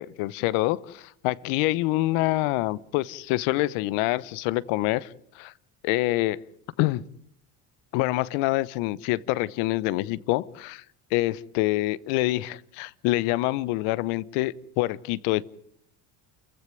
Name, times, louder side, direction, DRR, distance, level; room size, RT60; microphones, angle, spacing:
voice 1, 0.0-5.5 5.8-6.4 6.8-7.0 7.9-10.8 11.1-15.4, left 18 dB, 80° left, 1.0 m, -26 dB
28.5 x 15.5 x 9.4 m
supercardioid pair, 75°, 49 cm